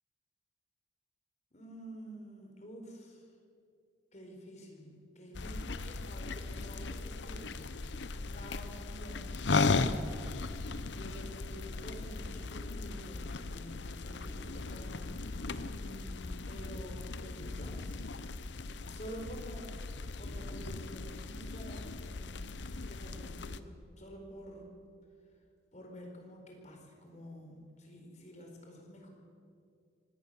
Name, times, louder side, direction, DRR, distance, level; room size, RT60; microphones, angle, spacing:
voice 1, 1.5-3.3 4.1-15.2 15.7-18.4 18.9-19.7 20.2-22.5 22.9-24.7 25.7-29.1, equal, 35° left, 2 dB, 4.4 m, -49 dB
sound 1, 5.3-23.6, left 3 dB, 60° left, 0.8 m, -37 dB
24.0 x 18.5 x 6.8 m, 2.4 s
head